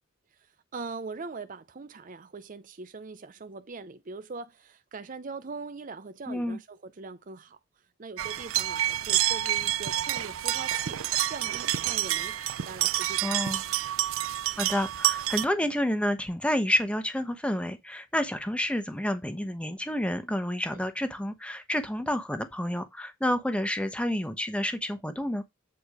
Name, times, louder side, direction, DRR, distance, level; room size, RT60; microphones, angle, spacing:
voice 1, 0.7-7.6 8.0-13.5 20.7-20.8, right 4 dB, 40° right, 0.6 m, -41 dB
voice 2, 6.3-6.6 13.2-13.6 14.6-25.4, left 1 dB, 5° left, 1.0 m, -29 dB
sound 1, 8.2-15.4, right 13 dB, 85° right, 0.6 m, -28 dB
8.3 x 4.5 x 4.8 m
head